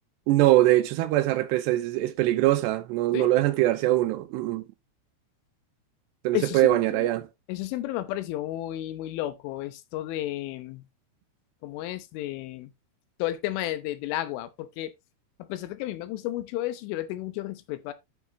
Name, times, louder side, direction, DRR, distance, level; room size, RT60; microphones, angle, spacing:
voice 1, 0.3-4.7 6.2-7.3, right 15 dB, 80° right, 2.7 m, -22 dB
voice 2, 6.3-7.1 7.5-10.9 11.6-12.7 13.2-14.9 15.5-17.9, left 14 dB, 85° left, 3.4 m, -32 dB
11.5 x 6.0 x 2.9 m
omnidirectional pair, 5.4 m